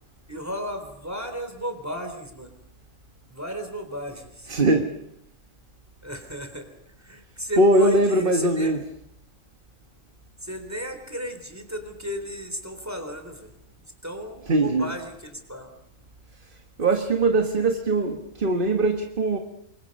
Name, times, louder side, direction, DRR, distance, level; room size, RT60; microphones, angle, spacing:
voice 1, 0.3-2.5 3.3-4.5 6.0-8.7 10.4-13.5 14.0-15.7, equal, 10° right, 7 dB, 3.6 m, -34 dB
voice 2, 4.5-4.9 7.6-8.8 14.5-14.9 16.8-19.4, right 2 dB, 35° right, 4 dB, 1.6 m, -21 dB
28.5 x 24.5 x 5.4 m, 0.75 s
omnidirectional pair, 1.6 m